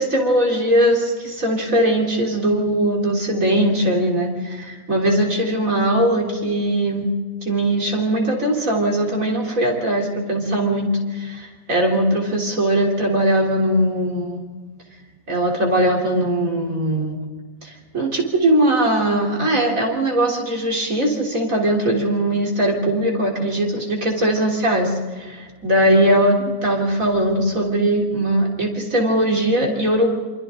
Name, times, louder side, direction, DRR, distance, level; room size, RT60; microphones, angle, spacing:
voice 1, 0.0-7.1 7.4-14.4 15.3-17.2 17.6-30.1, right 1 dB, 60° right, -1 dB, 3.9 m, -20 dB
28.5 x 26.5 x 3.8 m, 1.4 s
omnidirectional pair, 1.6 m